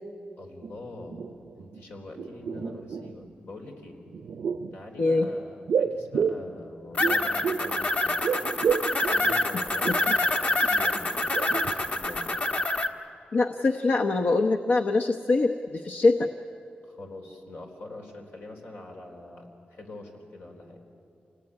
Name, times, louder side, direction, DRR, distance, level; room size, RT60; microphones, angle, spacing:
voice 1, 0.4-1.2 1.5-4.0 4.7-8.7 9.1-12.4 16.8-20.8, left 2 dB, 85° left, 1 dB, 4.0 m, -44 dB
sound 1, 0.6-0.7 1.0-1.8 2.1-3.3 4.1-4.8 5.7-7.8 8.0-10.1 10.6-10.7 11.1-12.2 12.4-12.5, right 6 dB, 90° right, 0.7 m, -30 dB
sound 2, 6.9-12.9, left 2 dB, 45° left, 1.4 m, -26 dB
voice 2, 13.3-16.3, left 3 dB, 65° left, 4 dB, 0.9 m, -23 dB
27.5 x 19.0 x 9.7 m, 2.6 s
cardioid pair, 85°, 3 cm